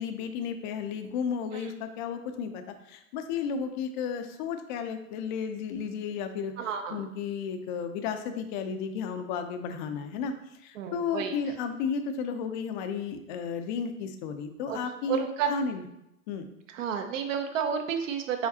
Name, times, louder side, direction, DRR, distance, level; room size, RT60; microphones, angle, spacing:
voice 1, 0.0-10.3 10.6-15.8 16.3-16.5, left 6 dB, 35° left, 8 dB, 0.4 m, -33 dB
voice 2, 6.6-7.1 10.8-11.3 14.7-14.8 15.1-15.5 16.7-18.5, right 7 dB, 60° right, 6 dB, 0.6 m, -31 dB
4.9 x 3.9 x 2.7 m, 0.83 s
hypercardioid pair, 105°, 43 cm